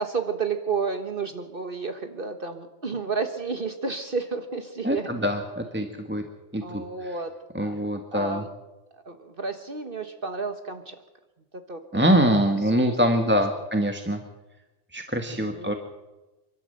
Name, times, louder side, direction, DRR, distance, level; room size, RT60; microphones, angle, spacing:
voice 1, 0.0-5.2 6.6-7.3 7.6-7.7 8.1-8.5 8.9-11.0 11.7-12.2 15.3-15.7, right 5 dB, 50° right, 7 dB, 1.5 m, -31 dB
voice 2, 4.8-6.2 6.5-6.8 7.5-8.4 11.9-14.2 14.9-15.7, equal, 10° right, 4 dB, 1.4 m, -24 dB
28.5 x 12.5 x 7.8 m, 1.1 s
omnidirectional pair, 1.2 m